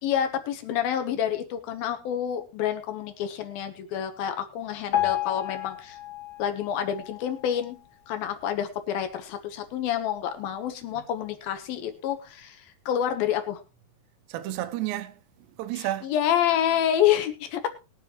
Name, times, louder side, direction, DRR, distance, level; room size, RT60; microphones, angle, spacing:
voice 1, 0.0-6.0 6.4-7.8 8.1-13.6 15.8-17.7, left 10 dB, 70° left, 2.6 m, -28 dB
Piano, 4.9-8.0 8.5-8.7 9.0-9.1 9.8-9.9 10.5-10.6, left 13 dB, 40° left, 2.3 m, -32 dB
voice 2, 14.3-16.1, right 14 dB, 80° right, 3.0 m, -32 dB
21.5 x 7.6 x 3.1 m
omnidirectional pair, 5.1 m